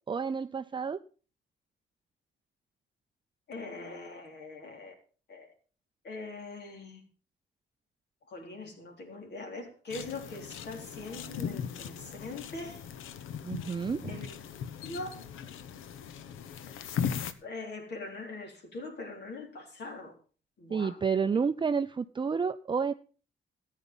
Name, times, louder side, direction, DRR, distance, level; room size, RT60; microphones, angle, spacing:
voice 1, 0.1-1.0 13.4-14.2 20.7-22.9, right 5 dB, 25° right, 0.5 m, -30 dB
voice 2, 3.5-4.9 5.3-5.5 6.0-7.0 8.3-12.8 14.1-14.3 14.8-15.1 17.4-20.1 20.6-21.0, left 3 dB, 60° left, 4.0 m, -42 dB
sound 1, 9.9-17.3, left 7 dB, 85° left, 1.0 m, -38 dB
14.0 x 9.3 x 5.4 m
cardioid pair, 90°, 20 cm